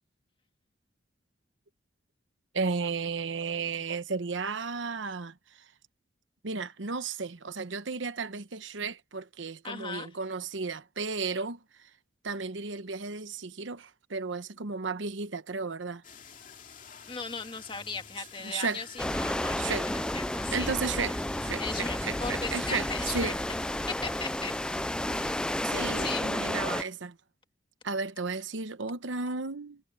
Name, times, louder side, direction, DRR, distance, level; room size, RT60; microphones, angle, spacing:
voice 1, 2.5-5.3 6.4-11.6 12.2-16.0 18.4-18.8 19.6-19.9 20.5-22.9 23.1-23.4 25.6-27.1 27.8-29.8, right 4 dB, 80° right, 1.0 m, -34 dB
voice 2, 9.6-10.2 17.1-20.7 21.6-23.3 23.9-24.5 26.0-26.3, left 4 dB, 25° left, 2.1 m, -38 dB
sound 1, 16.0-26.1, left 6 dB, 40° left, 2.6 m, -49 dB
sound 2, 19.0-26.8, left 1 dB, 5° left, 0.3 m, -31 dB
head